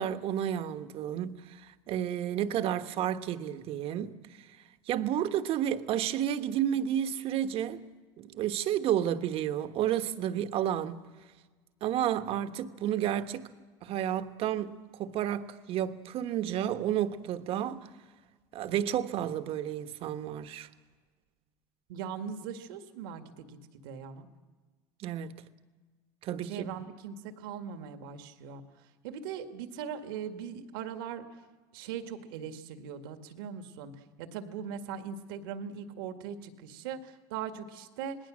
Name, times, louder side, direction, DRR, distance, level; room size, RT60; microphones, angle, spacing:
voice 1, 0.0-4.1 4.9-7.8 8.2-11.1 11.8-13.4 13.8-17.9 18.5-20.7 25.0-25.4 26.2-26.8, right 10 dB, 55° right, 1.3 m, -31 dB
voice 2, 21.9-23.6 23.8-24.3 26.4-28.6 29.0-31.3 31.7-33.9 34.2-38.2, right 7 dB, 80° right, 1.9 m, -40 dB
27.5 x 19.5 x 6.3 m
supercardioid pair, 100°, 12 cm